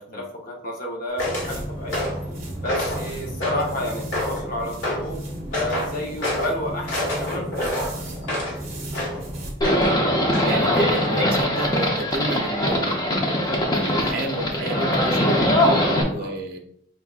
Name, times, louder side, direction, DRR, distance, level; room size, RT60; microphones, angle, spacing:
voice 1, 0.0-2.1 2.6-5.2 5.5-8.2 15.8-16.4, left 1 dB, 40° left, -2 dB, 0.9 m, -31 dB
sound 1, 1.2-1.5 1.9-2.3 2.7-3.0 3.4-3.8 4.1-4.5 4.8-5.1 5.5-5.9 6.2-6.5 6.9-8.6 8.9-9.2 9.6-10.0 10.3-10.5, left 1 dB, 75° left, 1.5 m, -28 dB
sound 2, 1.2-9.6, right 1 dB, 30° right, 1.0 m, -34 dB
Livestock farm animals working animals, 9.6-16.0, left 1 dB, 20° left, 0.6 m, -21 dB
voice 2, 9.7-10.0 10.4-13.3 13.7-16.6, right 1 dB, 45° right, 2 dB, 0.6 m, -31 dB
4.8 x 3.5 x 2.4 m, 0.69 s
head